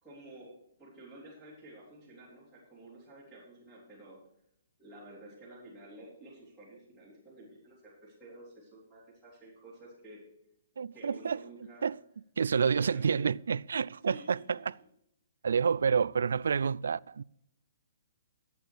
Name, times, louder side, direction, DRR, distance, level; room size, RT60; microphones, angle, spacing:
voice 1, 0.0-0.5 0.8-4.2 4.8-10.2 10.9-11.9 12.5-13.3 14.0-14.6, right 1 dB, 5° left, 3.2 m, -51 dB
voice 2, 10.8-11.4 11.8-12.0 12.4-14.7 15.4-17.2, right 6 dB, 85° right, 0.3 m, -29 dB
13.5 x 8.5 x 4.6 m
hypercardioid pair, 175°, 0 cm